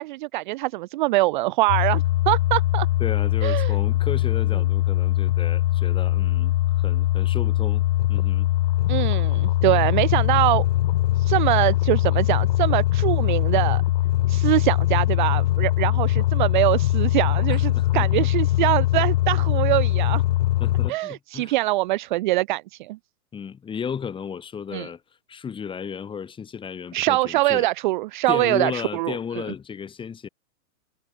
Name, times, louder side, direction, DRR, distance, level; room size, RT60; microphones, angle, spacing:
voice 1, 0.0-2.9 3.4-3.7 8.9-10.7 11.2-13.8 14.3-20.2 20.9-23.0 24.7-24.9 26.9-29.1, right 19 dB, 30° right, 1.1 m, -23 dB
sound 1, 1.7-20.9, left 15 dB, 35° left, 0.8 m, -21 dB
voice 2, 3.0-8.5 17.5-18.3 20.6-21.6 23.3-25.0 25.3-27.7 28.3-30.3, left 7 dB, 10° left, 5.5 m, -34 dB
hypercardioid pair, 160°, 45 cm